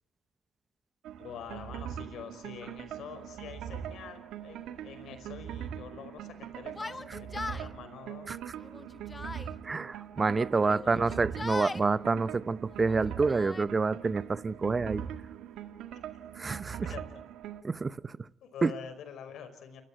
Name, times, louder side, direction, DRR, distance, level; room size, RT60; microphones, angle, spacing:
sound 1, 1.0-17.6, right 9 dB, 85° right, 1.8 m, -42 dB
voice 1, 1.2-8.3 10.6-11.2 15.9-16.0 16.8-17.0 18.4-19.8, left 7 dB, 75° left, 5.3 m, -46 dB
Yell, 6.7-7.7 8.6-9.5 10.5-11.9 12.7-13.6, left 3 dB, 20° left, 1.1 m, -40 dB
voice 2, 9.6-15.0 16.4-16.9 17.6-18.2 18.6-18.7, right 4 dB, 30° right, 0.8 m, -28 dB
30.0 x 14.5 x 8.9 m
cardioid pair, 95°, 0 cm